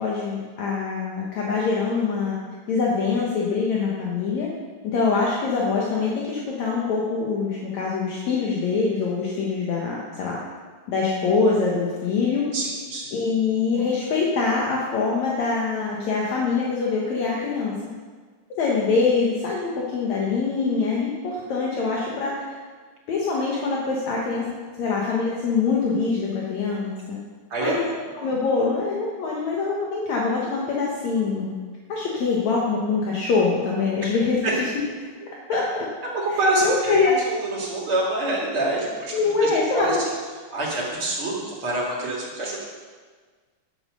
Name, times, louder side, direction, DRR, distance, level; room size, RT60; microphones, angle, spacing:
voice 1, 0.0-2.4 2.7-4.5 4.8-10.4 10.9-12.4 13.1-17.7 18.6-22.6 23.1-24.4 24.8-27.2 27.6-27.8 28.1-31.5 31.9-34.7 35.5-35.9 36.3-37.1 39.1-39.9, left 4 dB, 65° left, -3 dB, 2.5 m, -24 dB
voice 2, 12.5-13.1 27.5-27.9 34.4-34.5 36.1-36.9 37.3-40.0 40.5-42.6, right 2 dB, 40° right, -5 dB, 3.4 m, -26 dB
10.5 x 9.0 x 6.6 m, 1.5 s
omnidirectional pair, 3.6 m